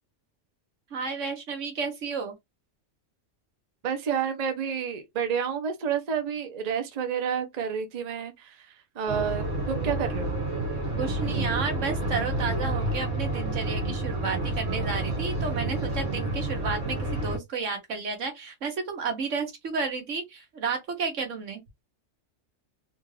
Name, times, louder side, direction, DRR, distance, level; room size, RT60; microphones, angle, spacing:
voice 1, 0.9-2.3 11.0-21.6, right 4 dB, 80° right, 1.4 m, -32 dB
voice 2, 3.8-8.6 8.9-10.4, right 7 dB, 40° right, 0.7 m, -30 dB
sound 1, 9.1-17.4, right 2 dB, 60° right, 1.7 m, -29 dB
3.7 x 2.4 x 3.2 m
omnidirectional pair, 1.3 m